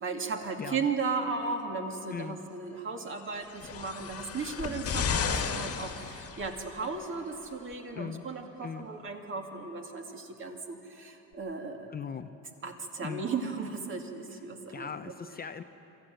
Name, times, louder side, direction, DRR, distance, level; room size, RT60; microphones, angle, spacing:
voice 1, 0.0-11.9 12.6-15.1, right 4 dB, 40° right, 2 dB, 2.5 m, -36 dB
sound 1, 3.4-6.8 7.7-7.8, left 6 dB, 45° left, 1.7 m, -33 dB
voice 2, 7.9-8.3 8.6-8.9 11.9-12.3 13.0-13.3 14.7-15.6, left 6 dB, 30° left, 8 dB, 0.6 m, -39 dB
25.5 x 14.0 x 8.9 m, 3.0 s
cardioid pair, 110°, 32 cm